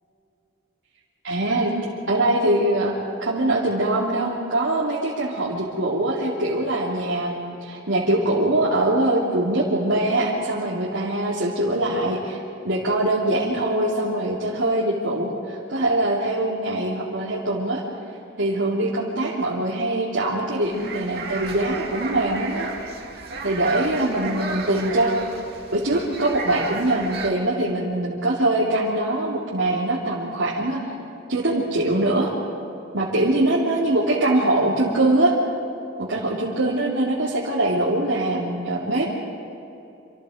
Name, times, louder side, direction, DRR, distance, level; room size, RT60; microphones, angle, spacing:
voice 1, 1.2-1.7 2.1-2.9 3.2-12.4 12.6-17.8 18.4-22.7 23.4-25.1 25.7-30.8 31.3-32.3 32.9-35.4 36.0-39.0, right 1 dB, 80° right, -7 dB, 3.2 m, -23 dB
sound 1, 20.6-27.3, right 3 dB, 55° right, 2.7 m, -33 dB
27.5 x 27.0 x 5.2 m, 2.8 s
head